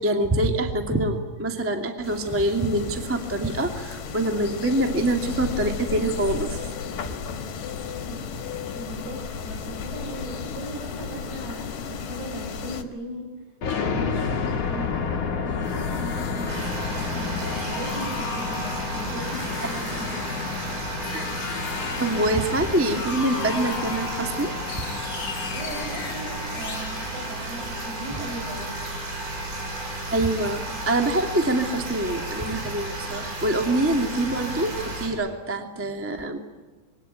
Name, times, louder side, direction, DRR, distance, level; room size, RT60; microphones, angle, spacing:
voice 1, 0.0-6.6 19.6-19.7 21.1-21.3 22.0-24.5 30.1-36.4, right 1 dB, 10° right, 4 dB, 0.8 m, -25 dB
sound 1, 2.0-12.8, left 6 dB, 55° left, 3.2 m, -34 dB
voice 2, 8.7-13.3 13.7-14.9 15.4-20.3 25.5-28.8, right 1 dB, 70° right, 2 dB, 9.2 m, -38 dB
sound 2, 13.6-28.3, left 5 dB, 40° left, 2.8 m, -31 dB
sound 3, 16.5-35.1, right 2 dB, 85° right, 8.8 m, -33 dB
27.0 x 22.5 x 9.3 m, 1.3 s
omnidirectional pair, 4.9 m